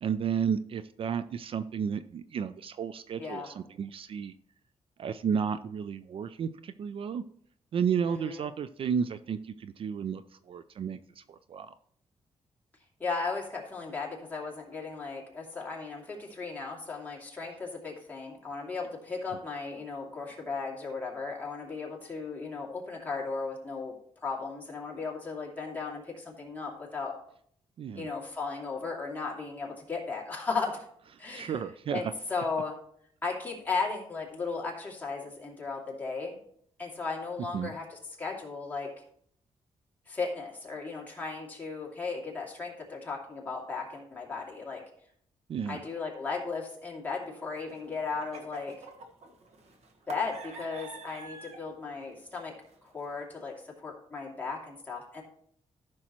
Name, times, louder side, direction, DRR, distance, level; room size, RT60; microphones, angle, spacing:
voice 1, 0.0-4.3 5.0-7.2 7.7-10.2 10.5-11.7 27.8-28.1 31.3-32.1 37.5-37.7 45.5-45.8, right 7 dB, 55° right, 13 dB, 0.4 m, -32 dB
voice 2, 3.2-3.5 8.1-8.4 13.0-23.9 24.2-27.2 27.9-30.8 31.2-31.6 31.9-32.8 33.2-36.4 36.8-38.9 40.1-44.8 45.7-48.8 50.1-52.5 52.8-55.2, left 4 dB, 15° left, -3 dB, 2.6 m, -36 dB
sound 1, 47.5-51.7 52.0-52.4 52.6-53.2, right 2 dB, 75° right, 1.4 m, -47 dB
14.0 x 6.1 x 3.0 m, 0.65 s
wide cardioid pair, 135°, 11 cm